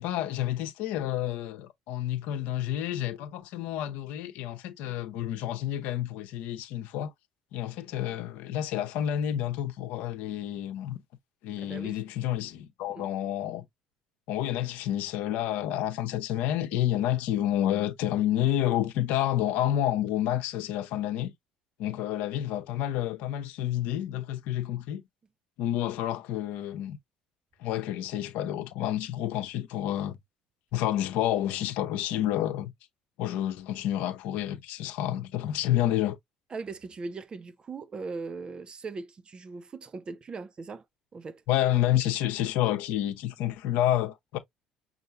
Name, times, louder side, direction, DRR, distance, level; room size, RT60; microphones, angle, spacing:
voice 1, 0.0-7.1 7.5-11.0 11.4-13.7 14.3-21.3 21.8-25.0 25.6-27.0 27.6-30.2 30.7-32.7 33.2-36.2 41.5-44.4, left 12 dB, 70° left, 0.8 m, -29 dB
voice 2, 11.6-12.0 12.9-13.1 36.5-40.8 41.1-41.4, right 4 dB, 35° right, 0.5 m, -39 dB
5.5 x 2.6 x 2.5 m
hypercardioid pair, 65°, 3 cm